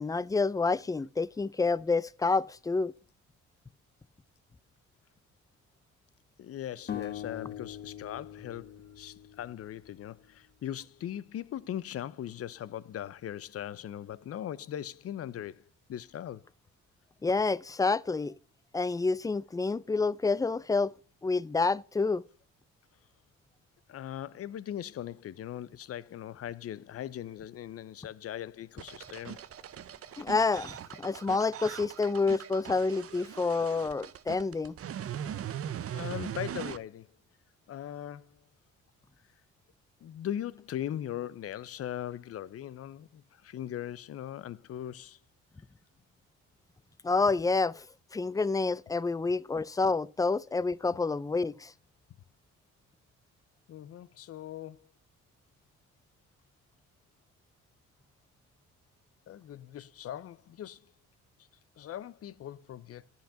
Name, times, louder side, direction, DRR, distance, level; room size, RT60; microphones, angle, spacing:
voice 1, 0.0-2.9 17.2-18.3 18.7-20.9 21.2-22.2 30.2-34.8 47.0-47.9 48.1-51.7, left 4 dB, 10° left, 0.4 m, -28 dB
voice 2, 6.4-15.6 15.9-16.4 23.9-29.4 35.9-37.1 37.7-38.4 40.0-45.2 53.7-54.9 59.3-60.9 61.8-63.0, left 11 dB, 50° left, 0.6 m, -40 dB
sound 1, 6.9-10.1, left 9 dB, 35° left, 1.0 m, -42 dB
sound 2, 28.8-36.8, right 9 dB, 50° right, 0.7 m, -40 dB
10.5 x 5.7 x 5.7 m
cardioid pair, 90°, 30 cm